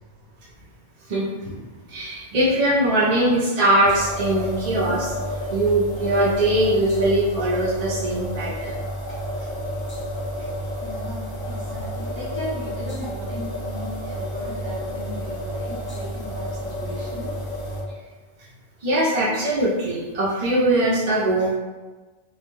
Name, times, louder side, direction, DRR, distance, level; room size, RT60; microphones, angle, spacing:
voice 1, 1.1-1.6 1.9-5.1 5.5-8.7 18.8-21.6, right 1 dB, 55° right, -7 dB, 0.4 m, -21 dB
sound 1, 3.8-17.8, equal, 30° left, 0.4 m, -31 dB
voice 2, 10.8-17.3, equal, 40° right, -7 dB, 0.9 m, -36 dB
2.3 x 2.1 x 3.0 m, 1.3 s
omnidirectional pair, 1.2 m